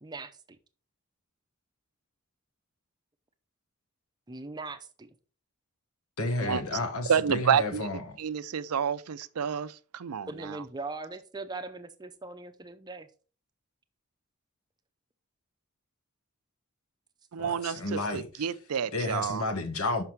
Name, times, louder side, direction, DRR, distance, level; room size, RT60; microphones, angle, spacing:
voice 1, 0.0-0.4 4.3-5.1 10.3-13.1 18.0-18.1, right 3 dB, 20° right, 0.5 m, -40 dB
voice 2, 6.2-8.2 17.4-18.3 18.9-20.0, left 2 dB, 75° left, 1.3 m, -31 dB
voice 3, 7.1-7.9 8.2-10.6 17.3-19.4, right 7 dB, 85° right, 0.5 m, -29 dB
5.8 x 5.7 x 4.5 m
head